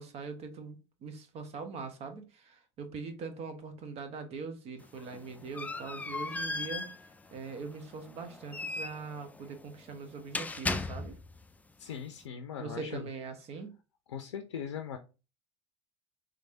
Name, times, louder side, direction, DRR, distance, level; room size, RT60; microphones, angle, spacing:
voice 1, 0.0-6.9 7.3-11.2 12.6-13.7, right 4 dB, 45° right, 8 dB, 1.1 m, -42 dB
sound 1, 4.8-11.4, left 3 dB, 10° left, 0.4 m, -38 dB
voice 2, 11.8-13.1 14.1-15.0, left 7 dB, 80° left, 7 dB, 0.5 m, -40 dB
3.8 x 3.2 x 2.8 m, 0.30 s
hypercardioid pair, 75°, 15 cm